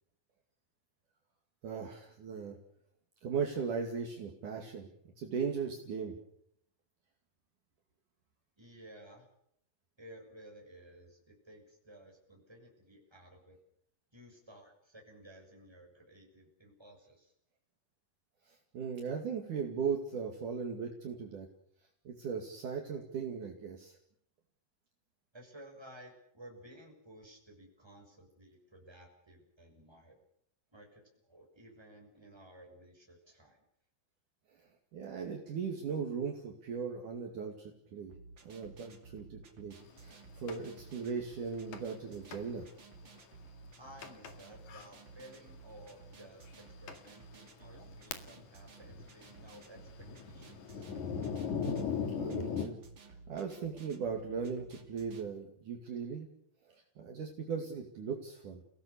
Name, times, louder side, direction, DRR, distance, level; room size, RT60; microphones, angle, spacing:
voice 1, 1.6-2.6 3.2-4.9 5.2-6.2 18.5-21.5 22.1-24.0 34.9-38.1 38.4-39.7 40.0-42.7 51.9-52.8 53.1-56.3 56.7-58.6, right 6 dB, 60° right, 2 dB, 3.6 m, -38 dB
voice 2, 8.6-9.3 10.0-13.6 14.1-17.3 25.3-30.1 30.7-33.6 43.8-46.5 46.8-50.9, right 1 dB, 5° right, 0 dB, 6.3 m, -55 dB
sound 1, 38.1-55.3, right 4 dB, 35° right, 2.8 m, -55 dB
Thunder, 40.5-40.6 41.7-42.0 42.3-42.4 43.1-43.2 44.0-44.3 44.7-44.9 45.8-45.9 46.5-46.6 46.9-47.0 47.6-48.6 48.8-52.7, left 6 dB, 55° left, 3.1 m, -38 dB
30.0 x 17.5 x 6.9 m, 0.73 s
omnidirectional pair, 4.4 m